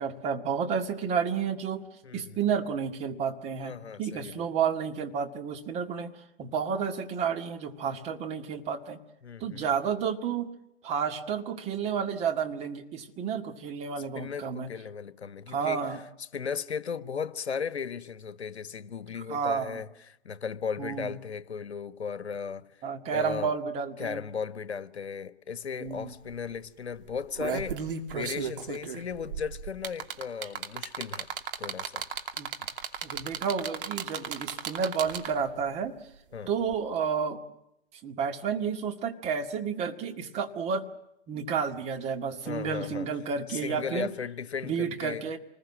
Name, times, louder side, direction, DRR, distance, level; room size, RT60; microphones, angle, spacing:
voice 1, 0.0-1.8 2.1-6.1 6.4-9.0 9.4-10.5 10.8-14.7 15.5-16.0 19.3-19.8 20.8-21.2 22.8-24.2 25.8-26.1 32.4-32.5 33.0-35.9 36.5-37.5 38.0-40.9 41.3-44.1 44.6-45.4, right 6 dB, 20° right, 1.9 m, -31 dB
voice 2, 2.0-2.5 3.6-4.5 9.2-9.6 14.1-16.0 16.3-23.5 24.0-31.3 31.6-32.0 36.3-36.5 42.4-43.1 43.5-45.3, left 6 dB, 70° left, 1.4 m, -36 dB
sound 1, 25.9-26.0 26.3-26.5 27.1-35.5 36.7-36.8, right 7 dB, 50° right, 2.8 m, -35 dB
28.0 x 20.5 x 7.4 m
figure-of-eight pair, 135°, 34 cm